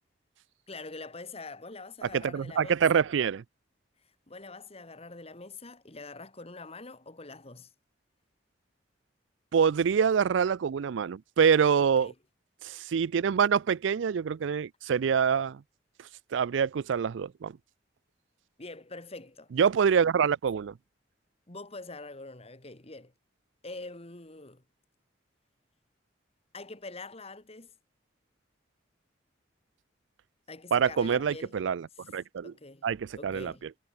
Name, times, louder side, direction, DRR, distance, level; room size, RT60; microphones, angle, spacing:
voice 1, 0.7-2.8 4.3-7.7 11.8-12.2 18.6-19.5 21.5-23.1 23.6-24.6 26.5-27.7 30.5-31.6 32.4-32.9 33.2-33.7, left 3 dB, 30° left, 1.9 m, -44 dB
voice 2, 2.0-3.4 9.5-12.1 12.6-15.6 16.3-17.6 19.5-20.7 30.7-31.9 32.1-32.5 32.8-33.5, right 7 dB, 75° right, 0.4 m, -25 dB
head